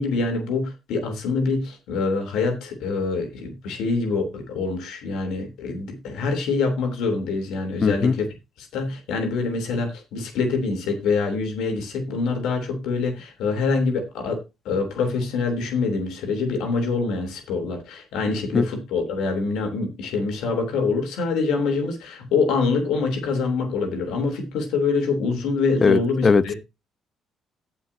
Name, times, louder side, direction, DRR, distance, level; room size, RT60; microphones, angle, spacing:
voice 1, 0.0-8.3 8.6-26.6, left 4 dB, 80° left, 3.4 m, -25 dB
voice 2, 7.8-8.1 18.5-18.6 25.8-26.5, left 5 dB, 40° left, 0.9 m, -19 dB
17.5 x 6.0 x 2.8 m
supercardioid pair, 75°, 0 cm